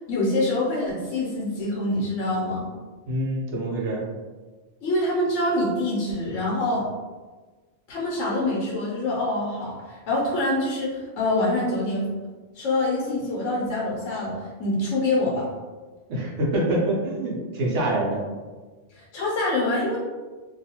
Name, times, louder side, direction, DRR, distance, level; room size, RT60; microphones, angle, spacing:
voice 1, 0.1-2.7 4.8-6.8 7.9-12.1 12.6-14.3 14.6-15.4 18.9-20.0, left 2 dB, 85° left, -5 dB, 1.0 m, -25 dB
voice 2, 3.1-4.0 16.1-18.2, right 1 dB, 75° right, -3 dB, 1.0 m, -25 dB
2.6 x 2.3 x 2.7 m, 1.3 s
omnidirectional pair, 1.2 m